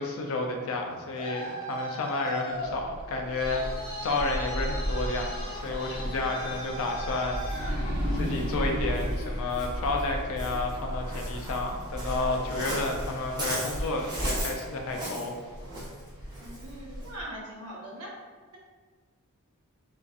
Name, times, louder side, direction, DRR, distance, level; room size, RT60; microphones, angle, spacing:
voice 1, 0.0-15.3, left 2 dB, 65° left, 2 dB, 0.4 m, -31 dB
Traffic noise roadway noise, 0.8-8.5, left 1 dB, 20° left, 0.7 m, -39 dB
sound 1, 2.5-5.4 5.8-5.9 7.3-12.4, equal, 45° right, 1.0 m, -36 dB
Waves surf, 3.4-17.2, equal, 20° right, 0.6 m, -35 dB
voice 2, 16.4-18.2, right 1 dB, 80° right, -3 dB, 0.7 m, -41 dB
2.5 x 2.2 x 2.3 m, 1.5 s
head